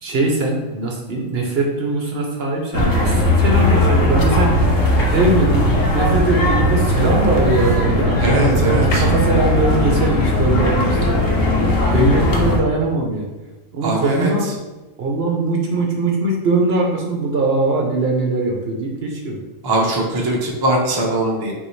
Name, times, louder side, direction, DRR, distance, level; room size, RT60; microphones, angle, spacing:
voice 1, 0.0-4.8 5.1-11.4 11.9-13.3 13.7-14.5 15.0-19.4, right 2 dB, 60° right, 0 dB, 0.8 m, -21 dB
sound 1, 2.7-12.6, left 1 dB, 80° left, 1.1 m, -17 dB
voice 2, 8.2-9.0 13.8-14.3 19.6-21.5, right 1 dB, 25° right, -1 dB, 0.5 m, -20 dB
5.4 x 2.7 x 3.1 m, 1.1 s
omnidirectional pair, 1.3 m